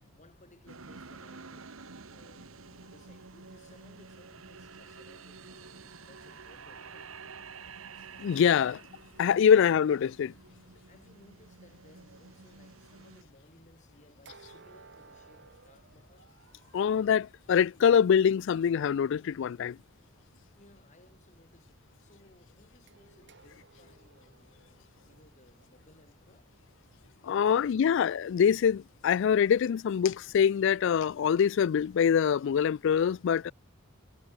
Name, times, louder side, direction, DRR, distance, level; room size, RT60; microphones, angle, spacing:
voice 1, 0.0-7.2 10.9-16.4 20.6-26.6 27.5-28.1, left 2 dB, 35° left, 5.2 m, -61 dB
sound 1, 0.7-13.2, right 5 dB, 85° right, 1.5 m, -50 dB
voice 2, 8.2-8.8 9.2-10.3 16.7-19.8 27.2-33.5, left 7 dB, 65° left, 0.3 m, -24 dB
sound 2, 14.3-16.9 22.9-26.9, right 4 dB, 60° right, 2.1 m, -58 dB
head